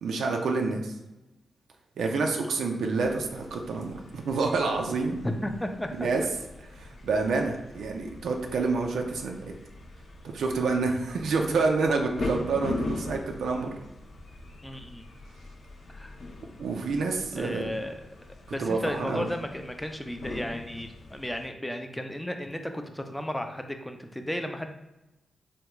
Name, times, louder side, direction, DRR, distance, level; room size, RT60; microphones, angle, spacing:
voice 1, 0.0-0.9 2.0-5.2 6.0-6.2 6.6-9.5 10.3-13.7 16.6-17.7 18.6-19.3, right 4 dB, 85° right, 2 dB, 0.4 m, -28 dB
sound 1, 3.0-21.5, left 2 dB, 65° left, 0.6 m, -41 dB
voice 2, 5.2-5.9 14.6-15.0 15.9-16.2 17.3-18.0 18.5-24.7, left 1 dB, 10° left, 6 dB, 0.4 m, -34 dB
3.4 x 2.3 x 2.9 m, 0.97 s
cardioid pair, 65°, 0 cm